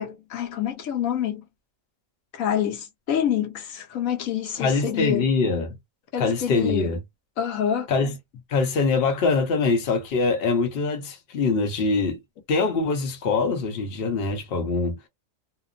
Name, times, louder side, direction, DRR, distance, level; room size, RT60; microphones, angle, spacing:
voice 1, 0.0-1.4 2.3-5.3 6.1-6.9 7.4-7.9, left 9 dB, 80° left, 1.1 m, -27 dB
voice 2, 4.6-5.7 6.2-7.0 7.9-8.1 8.5-12.2 12.5-15.0, left 4 dB, 50° left, 0.9 m, -23 dB
2.8 x 2.0 x 2.4 m
omnidirectional pair, 1.4 m